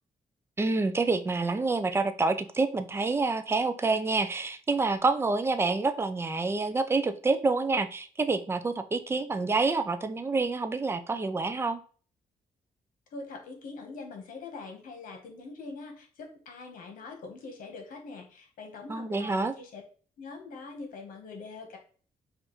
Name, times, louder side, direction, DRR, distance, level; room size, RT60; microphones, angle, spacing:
voice 1, 0.6-11.8 18.9-19.5, right 3 dB, 15° right, 10 dB, 0.4 m, -27 dB
voice 2, 13.1-19.8 20.2-21.8, left 3 dB, 80° left, 3 dB, 1.2 m, -43 dB
5.2 x 2.5 x 3.1 m, 0.42 s
cardioid pair, 135°, 14 cm